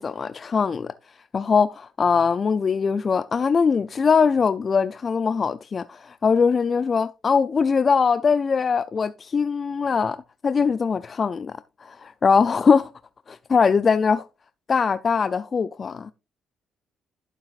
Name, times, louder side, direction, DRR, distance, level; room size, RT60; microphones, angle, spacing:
voice 1, 0.0-12.9 13.3-14.3 14.7-16.1, left 5 dB, 40° left, 0.4 m, -22 dB
11.5 x 7.4 x 2.4 m
supercardioid pair, 75°, 0 cm